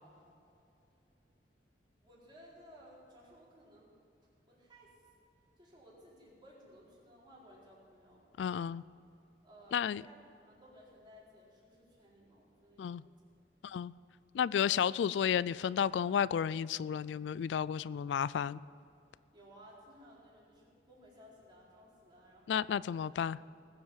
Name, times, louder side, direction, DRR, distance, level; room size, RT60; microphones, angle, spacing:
voice 1, 2.0-3.9 4.5-5.0 5.6-8.3 9.4-13.2 19.3-22.8, equal, 25° right, -6 dB, 4.5 m, -58 dB
voice 2, 8.4-8.8 9.7-10.0 12.8-13.0 13.6-13.9 14.3-18.6 22.5-23.4, left 8 dB, 85° left, 19 dB, 0.3 m, -32 dB
20.0 x 8.0 x 7.3 m, 2.6 s
head